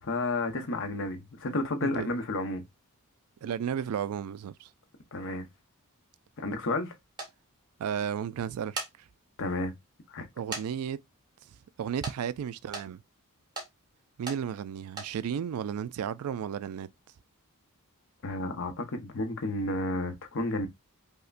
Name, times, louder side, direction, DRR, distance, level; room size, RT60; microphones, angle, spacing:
voice 1, 0.0-2.7 5.1-5.5 6.4-6.9 9.4-9.7 10.1-10.3 18.2-20.7, left 2 dB, 60° left, 0.8 m, -31 dB
voice 2, 3.4-4.7 7.8-8.8 10.4-11.0 11.8-13.0 14.2-16.9, right 8 dB, 75° right, 0.3 m, -33 dB
sound 1, 7.2-7.3 8.5-8.9 9.5-9.6 10.5-10.7 10.9-11.0 12.0-12.2 12.7-12.9 13.5-13.7 14.3-14.4 14.9-15.1, right 3 dB, 20° right, 1.3 m, -36 dB
5.4 x 2.1 x 2.4 m
head